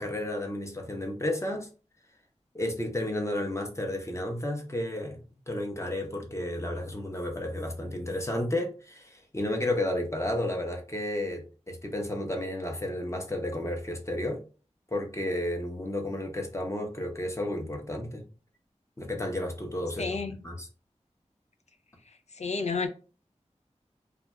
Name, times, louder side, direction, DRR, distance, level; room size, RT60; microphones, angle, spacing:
voice 1, 0.0-1.7 2.5-5.2 5.5-14.4 14.9-18.2 19.0-20.7, left 1 dB, 25° left, 0.7 m, -32 dB
voice 2, 20.0-20.4 22.4-22.9, left 4 dB, 65° left, 0.4 m, -30 dB
2.4 x 2.3 x 3.1 m
wide cardioid pair, 45°, 12 cm